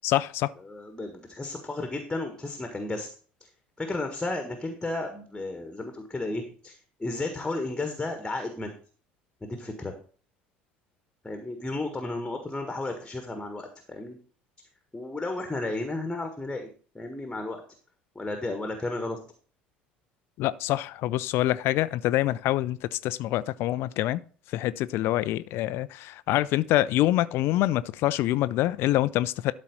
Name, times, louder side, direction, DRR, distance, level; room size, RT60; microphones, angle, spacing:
voice 1, 0.0-0.5 20.4-24.2 24.5-29.5, left 15 dB, 50° left, 0.4 m, -25 dB
voice 2, 0.6-3.1 3.4-3.5 3.8-8.7 9.4-9.9 11.2-14.2 14.9-16.7 16.9-17.6 18.1-19.2, left 2 dB, 10° left, 1.5 m, -33 dB
12.5 x 4.1 x 5.5 m
figure-of-eight pair, 60°, 5 cm